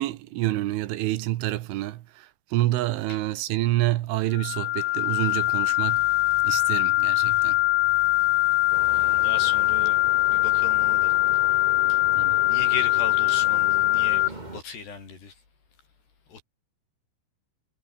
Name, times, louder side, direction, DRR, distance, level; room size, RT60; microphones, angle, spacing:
voice 1, 0.0-6.1 6.4-7.6 12.2-12.4, right 16 dB, 80° right, 3.6 m, -28 dB
sound 1, 4.0-13.1, left 1 dB, 5° left, 5.6 m, -51 dB
sound 2, 4.3-14.3, left 21 dB, 85° left, 3.0 m, -22 dB
sound 3, 8.7-14.6, right 2 dB, 15° right, 1.7 m, -40 dB
voice 2, 8.9-10.0 10.2-11.1 11.9-12.0 12.5-15.3 16.3-16.4, left 5 dB, 55° left, 8.5 m, -37 dB
omnidirectional pair, 5.7 m